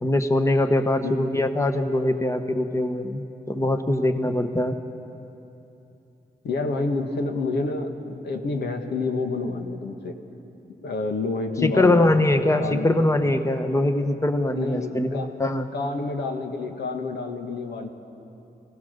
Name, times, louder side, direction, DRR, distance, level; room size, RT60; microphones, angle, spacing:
voice 1, 0.0-4.8 11.6-15.7, left 1 dB, 20° left, 8 dB, 1.2 m, -22 dB
voice 2, 6.4-10.2 10.8-12.1 12.6-12.9 14.5-15.3 15.7-17.9, left 3 dB, 90° left, 4 dB, 1.6 m, -28 dB
24.0 x 17.5 x 6.7 m, 2.9 s
cardioid pair, 80°, 17 cm